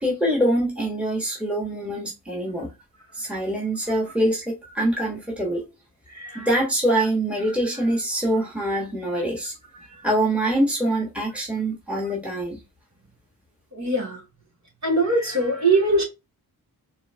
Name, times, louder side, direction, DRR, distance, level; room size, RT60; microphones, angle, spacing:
voice 1, 0.0-2.7 3.1-5.6 6.3-9.5 10.0-12.6, right 1 dB, 5° right, 1.5 m, -24 dB
voice 2, 6.1-6.5 7.5-7.6 9.7-10.1 13.7-14.2 14.8-16.0, right 2 dB, 45° right, 2.8 m, -23 dB
4.4 x 3.2 x 3.4 m
wide cardioid pair, 105°, 37 cm